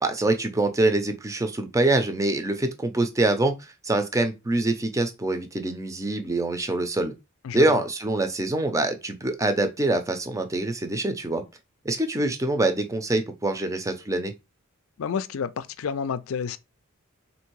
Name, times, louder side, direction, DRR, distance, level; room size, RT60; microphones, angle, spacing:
voice 1, 0.0-7.1 7.5-11.4 11.8-14.3, right 2 dB, 15° right, 0.6 m, -25 dB
voice 2, 7.4-7.8 15.0-16.6, left 6 dB, 70° left, 0.4 m, -30 dB
3.7 x 2.7 x 4.6 m
head